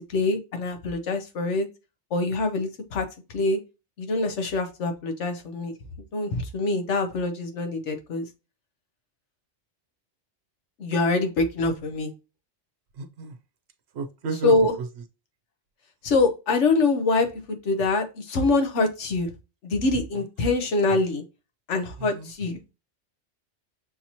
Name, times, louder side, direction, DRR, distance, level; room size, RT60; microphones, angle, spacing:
voice 1, 0.1-1.7 2.1-3.0 3.3-3.6 4.0-5.7 6.1-8.2 10.8-12.1 14.4-14.7 16.0-19.3 19.6-21.2 21.7-22.6, left 3 dB, 80° left, 1.2 m, -24 dB
voice 2, 12.9-13.4 13.9-14.9 22.0-22.3, right 4 dB, 65° right, 0.9 m, -31 dB
6.2 x 2.9 x 2.7 m
omnidirectional pair, 1.2 m